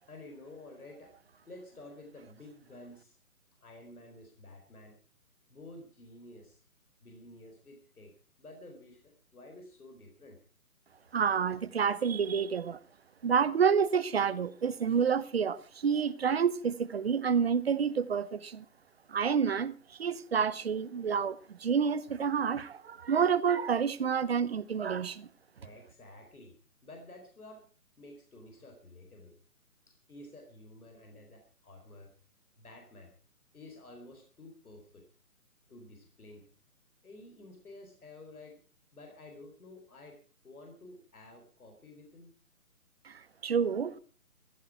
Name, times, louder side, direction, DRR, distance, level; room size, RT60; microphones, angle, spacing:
voice 1, 0.1-1.1 1.5-3.2 3.6-5.0 5.5-6.6 7.0-8.1 8.4-10.4 25.6-26.6 26.8-27.7 28.0-29.3 29.9-32.1 32.6-33.1 33.5-35.0 35.7-36.4 37.0-38.6 38.9-40.2 40.4-42.3, left 2 dB, 75° left, 4.4 m, -51 dB
voice 2, 11.1-12.8 13.2-18.6 19.1-25.3 43.0-44.0, right 6 dB, 45° right, 0.9 m, -29 dB
15.5 x 14.0 x 4.7 m
figure-of-eight pair, 145°, 44 cm